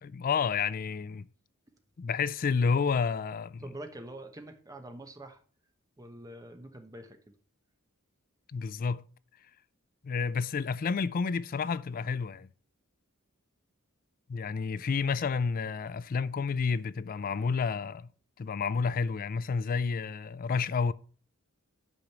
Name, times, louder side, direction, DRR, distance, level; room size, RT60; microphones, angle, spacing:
voice 1, 0.0-1.3 2.0-3.6 8.5-9.0 10.0-12.5 14.3-18.1 18.4-20.9, left 5 dB, 40° left, 0.3 m, -30 dB
voice 2, 3.6-5.4 6.0-7.2 14.8-14.9, right 1 dB, 15° right, 1.1 m, -45 dB
8.5 x 5.1 x 5.9 m
head